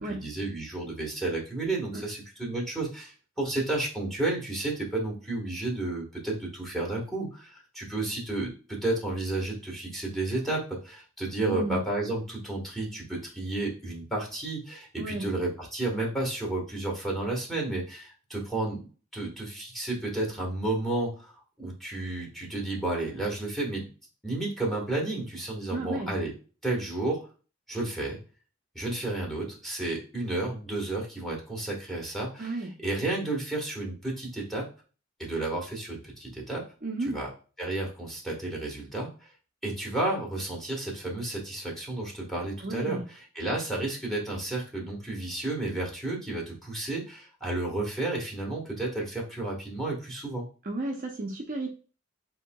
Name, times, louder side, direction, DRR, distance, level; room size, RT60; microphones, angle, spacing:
voice 1, 0.0-18.8 19.1-23.8 24.2-26.3 26.6-27.2 27.7-28.2 28.7-34.7 35.2-36.6 37.1-37.3 37.6-39.3 39.6-50.4, right 2 dB, ahead, -3 dB, 1.4 m, -32 dB
voice 2, 11.4-11.8 15.0-15.2 25.7-26.1 32.4-32.7 36.8-37.2 42.6-43.0 50.6-51.7, right 2 dB, 40° right, 0 dB, 0.6 m, -32 dB
6.7 x 2.8 x 2.3 m, 0.36 s
head